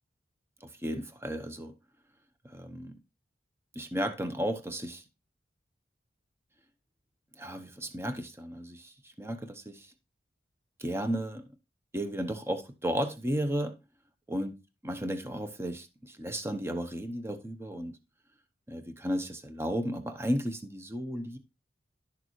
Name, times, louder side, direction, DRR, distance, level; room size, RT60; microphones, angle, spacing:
voice 1, 0.6-1.7 2.5-2.9 3.7-5.0 7.4-9.9 10.8-11.4 11.9-13.7 14.3-14.5 14.8-18.0 18.7-21.4, equal, 15° right, 0.8 m, -34 dB
11.5 x 6.7 x 3.1 m
head